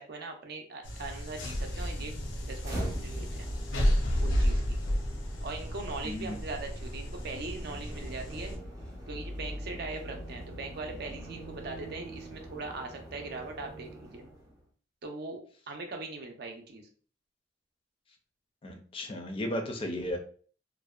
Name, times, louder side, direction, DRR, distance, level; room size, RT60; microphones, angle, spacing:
voice 1, 0.0-2.1 2.5-3.5 4.2-4.8 5.4-8.5 9.1-14.3 15.0-16.9, right 3 dB, 60° right, 3 dB, 0.5 m, -40 dB
sound 1, 0.8-8.6, equal, 90° left, 0.5 m, -32 dB
sound 2, 2.6-14.6, right 1 dB, 20° right, 0.6 m, -43 dB
voice 2, 6.0-6.4 18.6-20.2, left 1 dB, 30° left, 3 dB, 0.4 m, -34 dB
2.6 x 2.1 x 2.3 m, 0.43 s
head